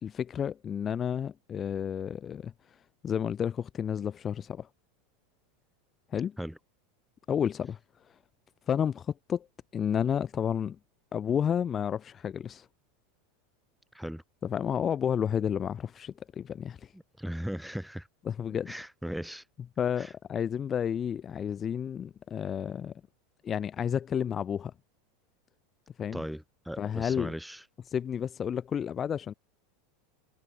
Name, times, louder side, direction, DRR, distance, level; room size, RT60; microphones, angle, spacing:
voice 1, 0.0-2.5 3.0-4.7 6.1-6.3 7.3-7.8 8.7-9.5 9.7-10.8 11.1-12.7 14.4-16.9 18.3-18.7 19.8-22.9 23.4-24.7 26.0-26.2 26.8-27.3 27.9-29.3, left 8 dB, 30° left, 2.5 m, -31 dB
voice 2, 16.9-18.1 18.7-19.4 20.0-20.1 26.1-27.6, equal, ahead, 6.2 m, -38 dB
figure-of-eight pair, 80°, 0 cm